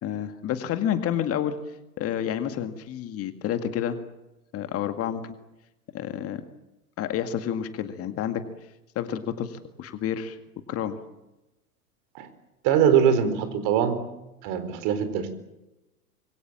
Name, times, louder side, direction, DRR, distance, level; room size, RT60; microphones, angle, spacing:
voice 1, 0.0-1.6 2.0-4.0 4.5-5.3 5.9-6.4 7.0-8.4 9.0-10.4 10.7-11.0, left 9 dB, 30° left, 8 dB, 2.0 m, -29 dB
voice 2, 12.6-14.0 14.4-15.3, right 8 dB, 45° right, 10 dB, 4.4 m, -22 dB
26.5 x 23.0 x 7.5 m, 0.98 s
figure-of-eight pair, 95°, 46 cm